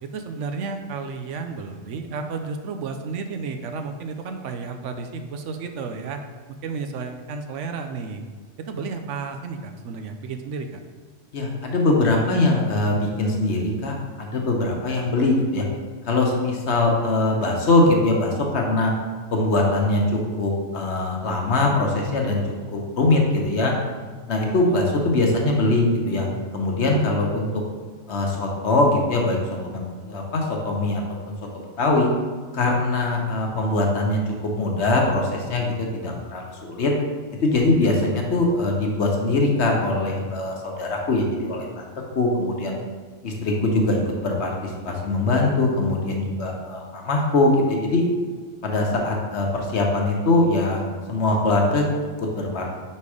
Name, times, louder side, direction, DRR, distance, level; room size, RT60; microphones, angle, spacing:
voice 1, 0.0-6.2 6.6-8.2 8.6-10.8 24.5-24.8 37.8-38.1, right 4 dB, 75° right, 6 dB, 0.9 m, -32 dB
voice 2, 11.3-15.6 16.0-18.9 19.3-22.4 22.7-23.7 24.3-26.3 26.5-27.5 28.1-31.0 31.8-32.1 32.5-36.9 37.4-41.8 42.1-42.8 43.2-48.0 48.6-50.8 51.1-51.9 52.2-52.7, left 2 dB, 65° left, 0 dB, 1.2 m, -22 dB
5.3 x 4.3 x 4.8 m, 1.5 s
omnidirectional pair, 1.3 m